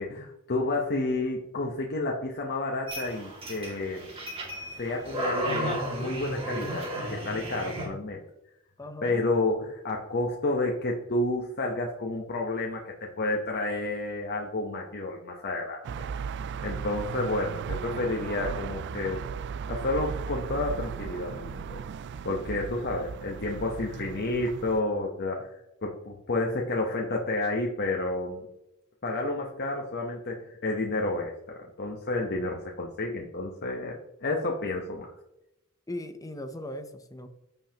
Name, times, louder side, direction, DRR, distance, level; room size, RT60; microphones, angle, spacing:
voice 1, 0.0-4.1 4.7-8.2 9.0-15.8 16.6-19.2 19.7-21.8 22.2-28.5 29.0-35.1, left 2 dB, 45° left, 0 dB, 1.0 m, -30 dB
sound 1, 2.9-7.9, equal, 25° right, 2.3 m, -34 dB
voice 2, 8.8-9.2 35.9-37.3, left 1 dB, 15° left, 8 dB, 0.7 m, -38 dB
sound 2, 15.8-24.8, right 6 dB, 55° right, 0.3 m, -36 dB
14.5 x 5.5 x 2.9 m, 0.88 s
head